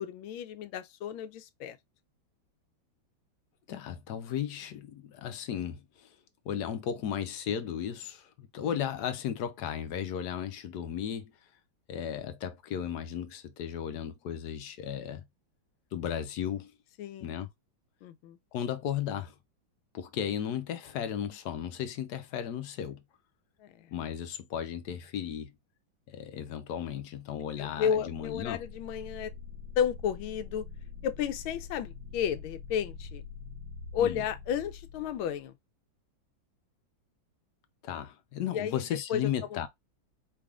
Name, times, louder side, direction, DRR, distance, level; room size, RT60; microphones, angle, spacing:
voice 1, 0.0-1.8 8.6-8.7 17.0-17.3 18.0-18.4 23.6-23.9 27.6-29.3 29.8-30.6 31.0-33.2 33.9-35.5 38.5-38.8 39.1-39.2 39.5-39.7, left 8 dB, 90° left, 1.4 m, -32 dB
voice 2, 3.7-6.1 6.4-11.3 11.9-15.2 15.9-16.7 17.2-17.5 18.5-19.3 19.9-23.0 23.9-25.5 26.1-28.6 34.0-34.2 37.8-39.7, left 9 dB, 65° left, 1.1 m, -35 dB
sound 1, 28.0-35.5, left 5 dB, 90° right, 1.5 m, -45 dB
4.9 x 3.5 x 2.4 m
omnidirectional pair, 2.2 m